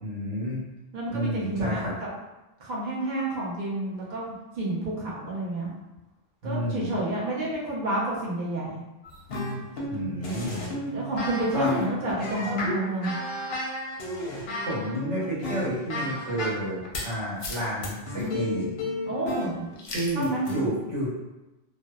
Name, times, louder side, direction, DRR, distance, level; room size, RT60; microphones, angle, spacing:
voice 1, 0.0-0.7 1.1-1.9 6.4-7.0 9.9-10.7 11.5-11.8 14.6-18.7 19.9-21.1, equal, 70° right, -7 dB, 1.2 m, -30 dB
voice 2, 0.9-1.9 2.6-5.7 6.4-8.8 10.9-13.2 19.0-19.7 20.2-20.4, right 1 dB, 50° right, -6 dB, 0.6 m, -29 dB
sound 1, 9.0-17.1 17.4-20.7, left 1 dB, 60° left, 0.7 m, -32 dB
2.6 x 2.1 x 2.2 m, 1.0 s
omnidirectional pair, 1.3 m